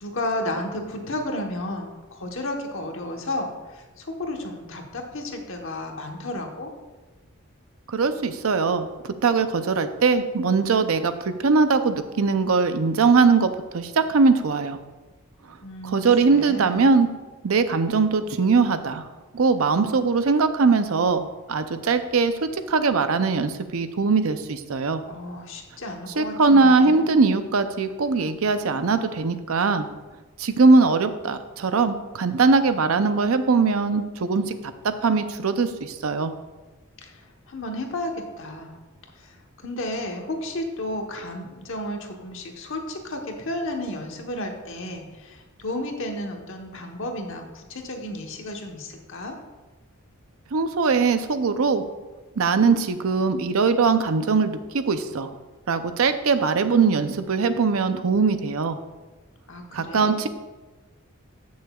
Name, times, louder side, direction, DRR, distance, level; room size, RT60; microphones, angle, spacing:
voice 1, 0.0-6.7 15.6-16.9 25.1-27.1 37.0-37.2 37.5-38.8 39.2-39.4 39.6-49.3 59.5-60.1, left 1 dB, 60° left, 2 dB, 1.2 m, -32 dB
voice 2, 7.9-8.9 9.2-14.8 15.8-17.1 17.4-19.1 19.3-25.0 26.2-29.9 30.4-34.5 34.8-36.3 50.5-51.8 52.4-55.3 55.7-58.8 59.7-60.3, right 4 dB, 75° right, 10 dB, 0.6 m, -21 dB
15.0 x 6.3 x 2.4 m, 1.2 s
head